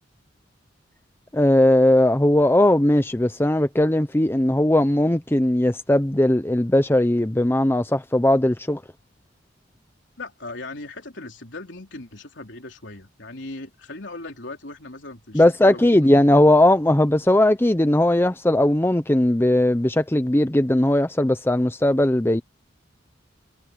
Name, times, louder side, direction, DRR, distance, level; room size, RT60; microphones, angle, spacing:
voice 1, 1.3-8.8 15.3-22.4, left 1 dB, 10° left, 0.7 m, -18 dB
voice 2, 10.2-16.4, left 2 dB, 65° left, 4.0 m, -38 dB
head